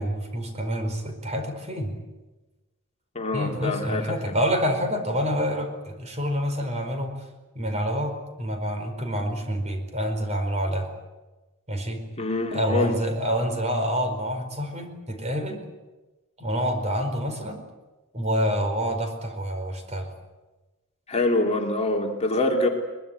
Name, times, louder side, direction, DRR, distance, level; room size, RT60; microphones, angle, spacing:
voice 1, 0.0-1.9 3.3-7.1 7.5-10.9 11.7-12.0 12.5-15.6 16.4-17.6 18.1-20.1, equal, 30° right, 6 dB, 4.7 m, -27 dB
voice 2, 3.1-4.3 12.2-12.9 21.1-22.7, left 2 dB, 30° left, 2 dB, 2.7 m, -25 dB
23.0 x 21.5 x 9.1 m, 1.1 s
head